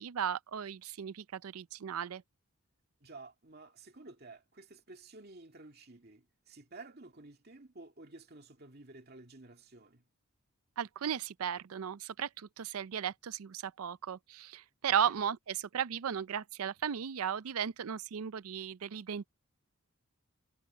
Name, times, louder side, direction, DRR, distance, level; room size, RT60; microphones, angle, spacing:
voice 1, 0.0-2.2 10.8-19.3, right 8 dB, 85° right, 0.5 m, -35 dB
voice 2, 3.0-10.0 14.9-15.2, right 3 dB, 45° right, 2.3 m, -52 dB
head